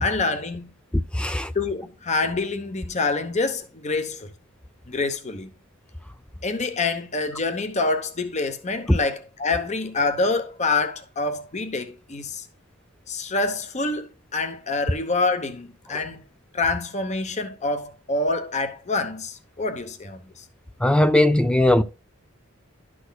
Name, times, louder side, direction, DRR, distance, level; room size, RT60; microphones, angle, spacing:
voice 1, 0.0-0.7 1.5-4.3 4.9-5.5 6.4-12.4 13.1-16.2 16.5-20.2, left 3 dB, 35° left, 0.9 m, -26 dB
voice 2, 1.1-1.5 8.9-9.0 20.8-21.8, left 1 dB, 5° left, 0.3 m, -18 dB
11.5 x 6.2 x 2.3 m
head